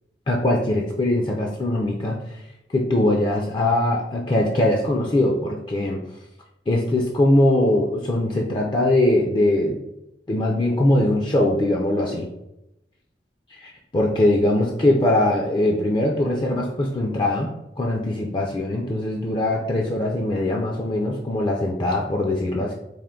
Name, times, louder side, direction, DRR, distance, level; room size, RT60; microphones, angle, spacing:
voice 1, 0.3-2.2 2.7-6.0 6.7-9.8 10.3-12.3 13.6-17.5 17.8-22.7, left 1 dB, 25° left, 0 dB, 0.3 m, -21 dB
3.4 x 2.5 x 3.7 m, 0.88 s
head